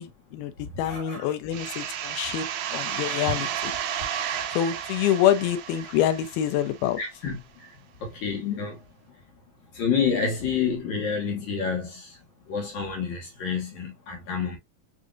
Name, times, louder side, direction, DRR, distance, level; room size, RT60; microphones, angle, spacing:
voice 1, 0.0-3.7 4.5-7.0, left 11 dB, 85° left, 2.5 m, -26 dB
voice 2, 0.8-1.3 2.1-2.4 2.7-3.3 7.0-7.7 8.0-8.8 9.7-12.2 12.5-14.6, left 6 dB, 60° left, 2.3 m, -29 dB
Sweep - Slight Effected B, 1.5-7.0, right 9 dB, 85° right, 2.5 m, -32 dB
7.3 x 2.7 x 2.4 m
omnidirectional pair, 4.3 m